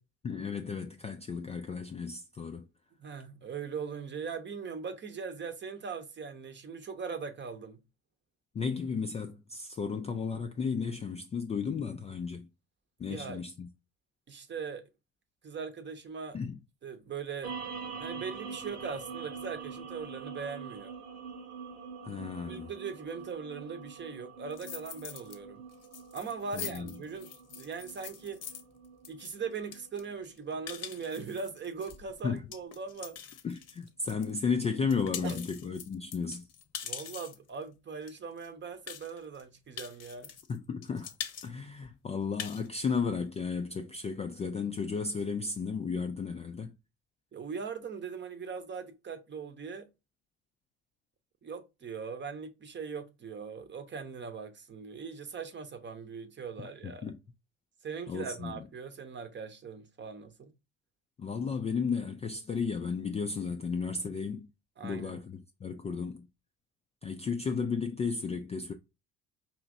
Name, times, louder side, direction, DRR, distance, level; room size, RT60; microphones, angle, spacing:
voice 1, 0.2-2.6 8.5-12.5 13.0-13.7 16.3-16.6 22.1-22.7 26.5-26.9 32.2-32.4 33.4-36.5 40.5-41.1 41.4-46.7 56.8-57.2 58.1-58.6 61.2-64.5 64.8-66.3 67.0-68.7, left 5 dB, 20° left, 0.3 m, -34 dB
voice 2, 3.0-7.8 13.0-13.4 14.3-14.8 15.4-16.4 16.8-17.5 18.0-20.9 22.5-25.6 26.1-27.3 27.5-28.4 29.1-33.2 35.2-35.4 36.8-40.3 47.3-49.9 51.4-57.0 57.8-60.5 64.8-65.2, right 5 dB, 30° right, 0.8 m, -40 dB
sound 1, 17.4-32.0, right 5 dB, 70° right, 1.0 m, -45 dB
sound 2, 24.5-25.4 25.7-34.3 34.7-37.5 38.1-38.2 38.4-38.5 38.9-39.4 39.8-40.6 40.8-41.5 41.8-41.9 42.2-42.7, left 8 dB, 45° left, 0.8 m, -43 dB
5.0 x 2.9 x 2.5 m
figure-of-eight pair, 50°, 37 cm